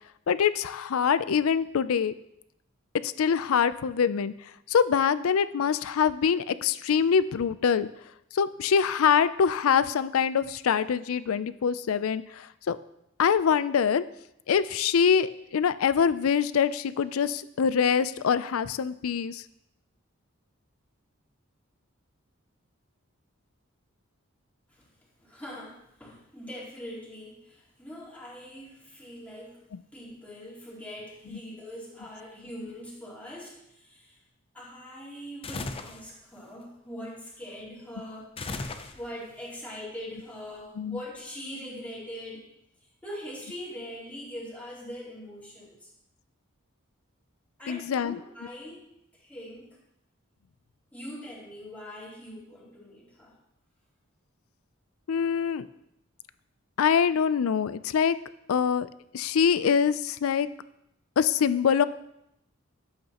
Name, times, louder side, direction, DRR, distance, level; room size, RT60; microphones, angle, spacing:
voice 1, 0.3-2.1 3.0-4.3 4.7-7.9 8.3-12.8 13.2-14.0 14.5-19.4 40.8-41.0 47.7-48.2 55.1-55.7 56.8-58.2 58.5-58.9 59.1-60.5 61.2-61.8, left 7 dB, 80° left, 15 dB, 0.4 m, -24 dB
voice 2, 25.2-29.6 29.9-34.2 34.5-42.5 42.8-45.9 47.6-49.8 50.9-53.4, equal, 5° left, -6 dB, 2.8 m, -42 dB
sound 1, 35.4-36.1 38.4-39.3, left 3 dB, 25° left, 0.5 m, -36 dB
11.5 x 8.0 x 2.9 m, 0.81 s
head